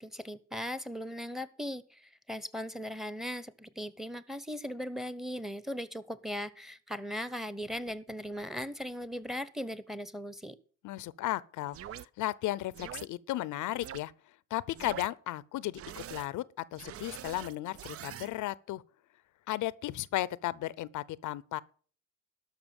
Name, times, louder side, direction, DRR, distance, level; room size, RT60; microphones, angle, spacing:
voice 1, 0.0-2.0 2.3-10.6, equal, ahead, 1.0 m, -38 dB
voice 2, 10.8-14.1 14.5-15.8 16.1-18.8 19.5-21.6, left 15 dB, 80° left, 0.6 m, -35 dB
sound 1, 11.7-12.1 12.7-13.1 13.8-14.0 14.7-15.1 15.7-16.3 16.7-18.3, right 11 dB, 50° right, 0.5 m, -44 dB
12.5 x 5.9 x 7.0 m
cardioid pair, 90°, 30 cm